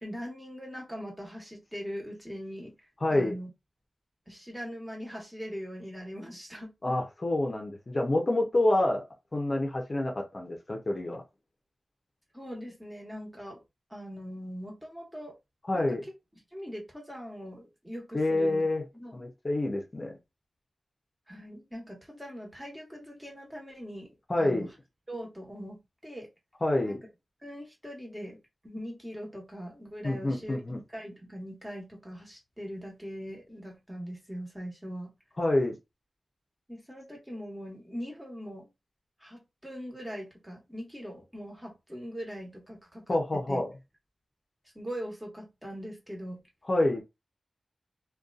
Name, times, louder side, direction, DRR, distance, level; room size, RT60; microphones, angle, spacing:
voice 1, 0.0-2.7 3.1-3.5 4.3-6.7 12.3-13.6 13.9-15.3 15.7-16.0 16.5-18.6 19.0-19.2 21.3-24.7 25.1-26.3 26.8-27.0 27.4-30.6 30.9-35.1 36.7-38.7 39.2-43.6 44.7-46.4, equal, 10° right, 1.2 m, -41 dB
voice 2, 3.0-3.3 6.8-9.0 9.3-11.2 15.7-16.0 18.1-18.8 19.1-20.1 24.3-24.7 26.6-27.0 30.0-30.8 35.4-35.8 43.1-43.7 46.7-47.0, left 1 dB, 40° left, 0.6 m, -27 dB
2.5 x 2.2 x 2.4 m
wide cardioid pair, 65°, 0 cm